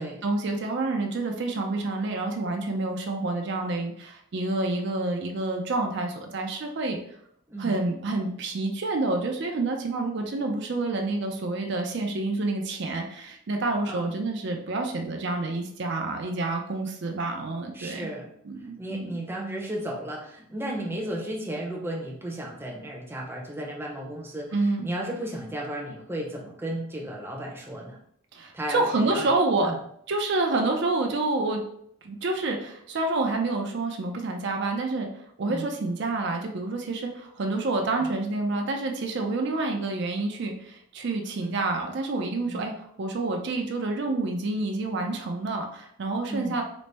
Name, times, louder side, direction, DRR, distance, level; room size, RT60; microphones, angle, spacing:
voice 1, 0.0-7.0 7.6-18.1 18.4-19.1 24.5-24.9 28.3-29.7 30.1-31.6 32.0-35.1 35.4-46.6, right 2 dB, 60° right, 3 dB, 0.4 m, -28 dB
voice 2, 17.7-18.3 18.8-28.0 28.5-29.3 29.6-29.8 35.4-35.7 38.0-38.1 41.4-41.6 42.5-42.7 46.3-46.6, right 1 dB, 10° right, -2 dB, 0.6 m, -34 dB
4.0 x 2.0 x 3.3 m, 0.70 s
head